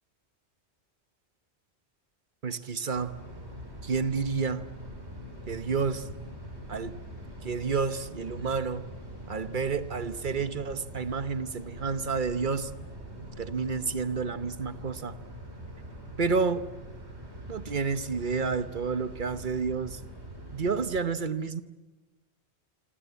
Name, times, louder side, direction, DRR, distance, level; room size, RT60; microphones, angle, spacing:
voice 1, 2.4-3.1 3.8-4.6 5.5-6.1 6.7-7.0 7.4-8.9 9.3-12.7 13.4-15.2 16.2-16.7 17.5-20.0 20.5-21.6, right 5 dB, 50° right, 12 dB, 1.2 m, -30 dB
sound 1, 2.9-21.0, equal, 80° right, 5.4 m, -43 dB
27.0 x 25.5 x 8.3 m, 1.2 s
omnidirectional pair, 1.1 m